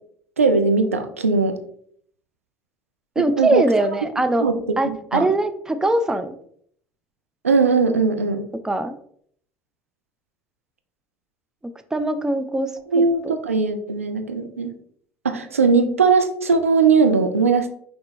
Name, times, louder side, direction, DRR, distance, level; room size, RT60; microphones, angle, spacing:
voice 1, 0.4-1.6 3.2-3.6 4.4-5.3 7.4-8.4 12.9-14.7 15.2-17.7, right 4 dB, 80° right, 7 dB, 0.4 m, -19 dB
voice 2, 3.2-4.5 4.8-6.3 8.6-8.9 11.9-12.7 13.2-13.3, right 2 dB, 10° right, 10 dB, 0.4 m, -21 dB
5.1 x 3.0 x 3.1 m, 0.62 s
figure-of-eight pair, 65°, 7 cm